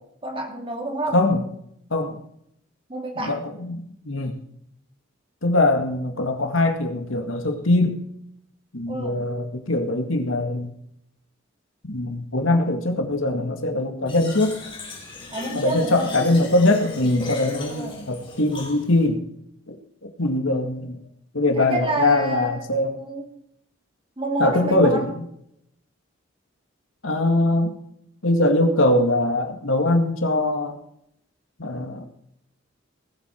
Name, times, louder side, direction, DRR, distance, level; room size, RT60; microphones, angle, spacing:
voice 1, 0.2-1.2 2.9-3.4 8.9-9.2 15.3-16.1 17.7-18.0 21.6-23.3 24.2-25.0, right 2 dB, 25° right, 2 dB, 2.9 m, -29 dB
voice 2, 1.1-1.4 1.9-2.2 3.2-4.4 5.4-8.0 8.7-10.7 11.9-14.6 15.5-19.2 19.7-19.8 20.2-21.0 21.3-23.0 24.4-25.2 27.0-27.8 28.2-30.8 31.6-32.1, left 2 dB, 80° left, 5 dB, 2.1 m, -22 dB
Fill (with liquid), 14.1-19.1, left 2 dB, 25° left, 5.3 m, -36 dB
19.5 x 8.1 x 4.5 m, 0.73 s
head